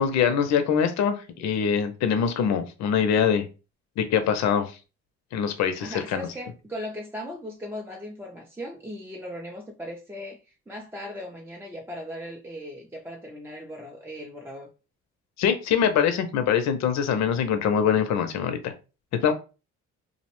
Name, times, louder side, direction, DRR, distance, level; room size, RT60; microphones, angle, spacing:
voice 1, 0.0-3.5 4.0-4.7 5.3-6.3 15.4-18.7 19.1-19.3, left 7 dB, 65° left, 0.5 m, -23 dB
voice 2, 5.5-14.7, equal, 10° right, 0.4 m, -38 dB
2.5 x 2.0 x 2.9 m
cardioid pair, 90°, 30 cm